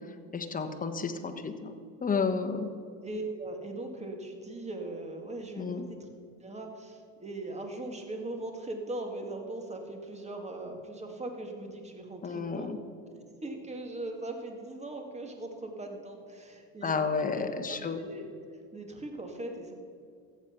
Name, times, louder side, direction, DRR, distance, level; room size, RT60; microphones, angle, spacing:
voice 1, 0.3-1.7 2.0-2.7 5.6-5.9 12.2-12.8 16.8-18.0, left 5 dB, 20° left, 6 dB, 1.3 m, -31 dB
voice 2, 3.0-6.1 6.4-12.7 13.4-18.3 18.7-19.7, right 2 dB, 20° right, 4 dB, 2.2 m, -40 dB
14.5 x 8.2 x 6.0 m, 2.3 s
supercardioid pair, 95°, 37 cm